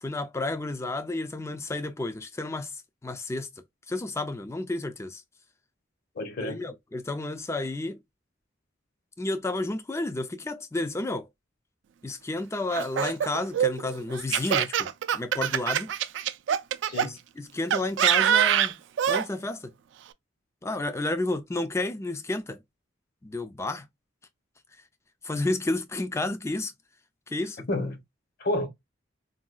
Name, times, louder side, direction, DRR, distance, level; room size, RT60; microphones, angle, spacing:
voice 1, 0.0-2.7 3.0-3.5 3.9-5.2 6.4-8.0 9.2-11.3 12.0-15.9 17.0-18.8 19.1-19.7 20.6-22.6 23.2-23.8 25.2-26.7 27.3-27.7, left 2 dB, 15° left, 0.4 m, -31 dB
voice 2, 6.2-6.6 16.8-17.2 27.6-28.0 28.4-28.7, left 1 dB, 50° left, 0.8 m, -30 dB
Laughter, 12.7-17.1 17.7-19.3, right 9 dB, 65° right, 0.3 m, -24 dB
3.8 x 2.3 x 2.2 m
head